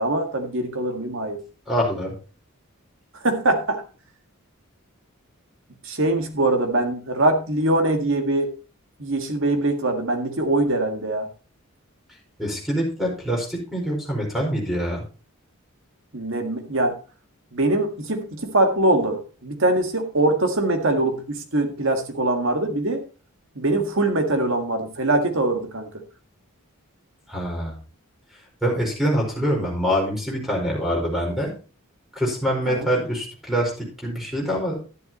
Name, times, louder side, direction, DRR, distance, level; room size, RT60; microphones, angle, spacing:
voice 1, 0.0-1.4 3.1-3.8 5.8-8.5 9.0-11.3 16.1-17.0 17.5-23.0 23.6-25.9 32.7-32.9, right 2 dB, 60° right, 5 dB, 1.8 m, -23 dB
voice 2, 1.7-2.1 12.4-15.0 27.3-27.8 28.6-31.5 32.1-34.8, equal, ahead, -1 dB, 4.8 m, -25 dB
11.5 x 10.5 x 3.0 m, 0.35 s
head